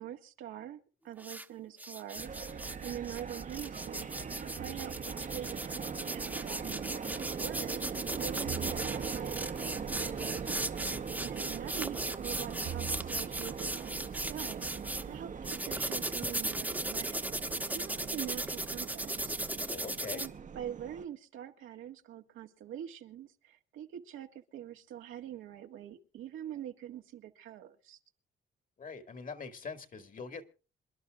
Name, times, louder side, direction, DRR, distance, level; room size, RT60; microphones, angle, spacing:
voice 1, 0.0-10.4 11.2-19.4 20.1-28.0, right 10 dB, 85° right, 1.8 m, -45 dB
sound 1, 1.2-1.4 1.8-15.0 15.4-20.3, right 1 dB, 10° right, 1.2 m, -37 dB
sound 2, 2.1-21.0, right 6 dB, 40° right, 1.0 m, -41 dB
sound 3, 4.6-5.4 8.4-9.5 12.6-13.6, right 8 dB, 65° right, 1.2 m, -44 dB
voice 2, 10.8-11.1 19.6-20.2 28.8-30.4, left 5 dB, 45° left, 2.1 m, -43 dB
27.0 x 11.5 x 2.5 m
cardioid pair, 90°, 20 cm